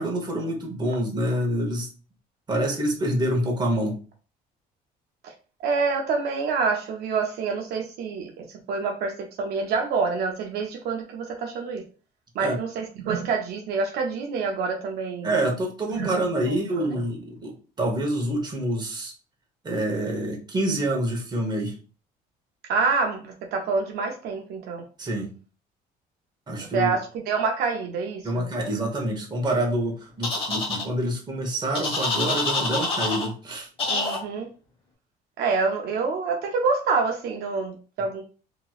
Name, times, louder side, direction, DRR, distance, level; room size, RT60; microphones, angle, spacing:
voice 1, 0.0-1.9 2.5-4.0 12.4-12.6 15.2-19.1 19.6-21.8 25.0-25.3 26.5-26.9 28.2-33.7, right 1 dB, 25° right, 1 dB, 1.0 m, -27 dB
voice 2, 5.6-11.8 12.3-15.4 15.9-16.2 16.5-17.0 22.7-24.8 26.7-28.4 33.9-34.5 35.4-38.2, right 4 dB, 70° right, 2 dB, 0.6 m, -27 dB
sound 1, 30.2-30.8 31.7-33.3 33.8-34.2, left 3 dB, 35° left, 1.1 m, -26 dB
2.9 x 2.9 x 2.3 m, 0.37 s
cardioid pair, 110°, 17 cm